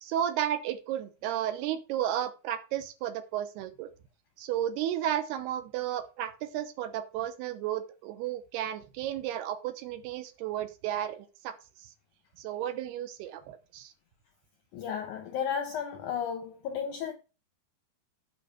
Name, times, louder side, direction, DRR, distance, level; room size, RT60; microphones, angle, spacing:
voice 1, 0.0-3.9 4.4-11.9 12.4-13.9, right 11 dB, 80° right, 2.9 m, -33 dB
voice 2, 14.7-17.1, left 7 dB, 75° left, 1.8 m, -33 dB
8.6 x 5.3 x 5.8 m
omnidirectional pair, 4.7 m